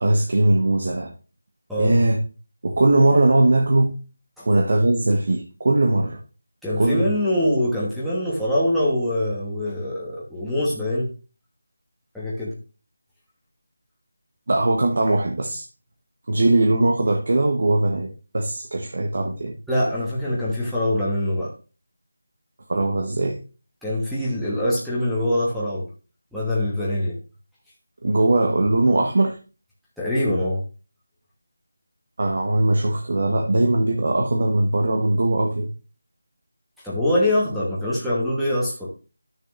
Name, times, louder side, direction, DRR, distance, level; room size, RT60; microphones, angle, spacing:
voice 1, 0.0-1.1 1.8-2.2 2.6-3.9 4.4-6.2 6.8-7.1 14.5-15.7 16.3-19.5 22.7-23.4 28.0-29.4 32.2-35.7, right 2 dB, 55° right, 3 dB, 1.0 m, -20 dB
voice 2, 6.6-11.1 12.1-12.6 19.7-21.5 23.8-25.9 26.3-27.2 30.0-30.6 36.8-38.9, left 1 dB, ahead, -10 dB, 1.2 m, -24 dB
12.5 x 6.5 x 2.6 m, 0.34 s
figure-of-eight pair, 170°, 0 cm